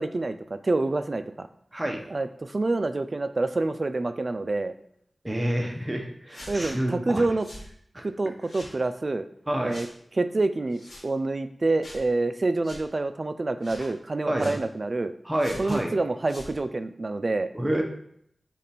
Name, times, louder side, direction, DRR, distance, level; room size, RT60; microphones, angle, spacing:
voice 1, 0.0-1.5 2.1-4.7 6.5-7.5 8.0-9.3 9.6-9.9 10.2-15.1 15.6-17.5, right 2 dB, 45° right, 10 dB, 0.3 m, -27 dB
voice 2, 5.2-7.2 7.9-8.0 9.5-9.7 14.2-14.5 15.2-15.9 17.5-17.8, right 1 dB, 20° right, 1 dB, 0.8 m, -28 dB
sound 1, 6.3-6.7 7.4-7.7 8.4-8.8 9.7-9.9 10.7-11.0 11.8-12.0 12.6-12.8 13.6-13.9 14.4-14.6 15.4-15.8 16.2-16.5, left 1 dB, 75° left, 1.2 m, -43 dB
5.1 x 2.5 x 4.2 m, 0.68 s
wide cardioid pair, 100°, 0 cm